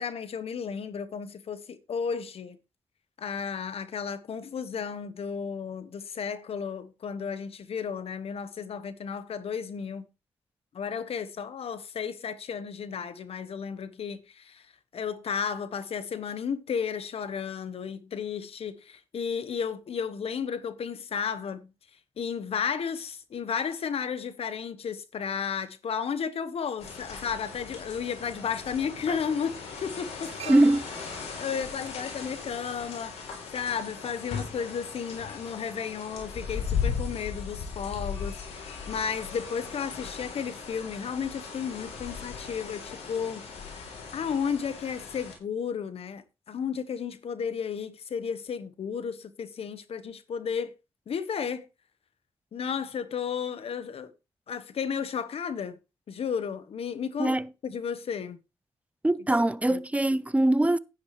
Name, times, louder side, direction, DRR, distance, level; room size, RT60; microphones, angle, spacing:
voice 1, 0.0-2.6 3.2-10.1 10.7-14.7 14.9-21.7 22.2-30.5 31.4-43.4 44.1-50.7 51.1-51.6 52.5-54.1 54.5-55.8 56.1-57.4 57.6-58.4 59.7-59.8, left 7 dB, 65° left, 1.2 m, -33 dB
sound 1, 26.8-45.3, left 6 dB, 80° left, 3.6 m, -38 dB
sound 2, 27.3-27.4 28.6-28.8 29.1-33.4 33.7-33.9, right 10 dB, 75° right, 0.9 m, -47 dB
voice 2, 30.5-30.9 57.2-57.5 59.0-60.8, right 1 dB, 10° right, 0.7 m, -22 dB
10.0 x 9.6 x 3.3 m
cardioid pair, 55°, 11 cm